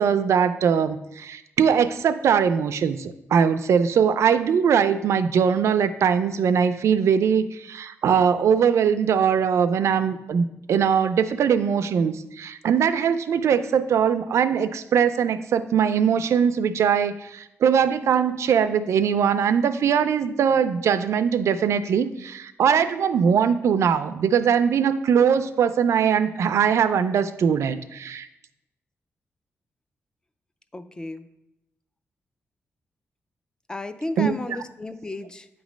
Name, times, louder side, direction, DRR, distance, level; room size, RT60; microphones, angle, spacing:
voice 1, 0.0-28.3 34.2-34.6, right 7 dB, 75° right, 12 dB, 0.4 m, -21 dB
voice 2, 30.7-31.2 33.7-35.5, left 2 dB, 15° left, 11 dB, 0.3 m, -33 dB
8.8 x 3.1 x 5.0 m, 0.86 s
wide cardioid pair, 170°, 5 cm